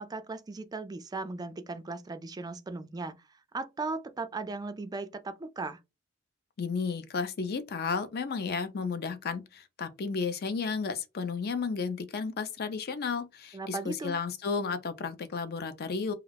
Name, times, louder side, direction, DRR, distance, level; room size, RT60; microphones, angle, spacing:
voice 1, 0.0-3.2 3.5-5.8 13.5-14.2, right 3 dB, 20° right, 0.3 m, -37 dB
voice 2, 6.6-16.1, left 5 dB, 50° left, 0.4 m, -33 dB
2.3 x 2.3 x 3.3 m
head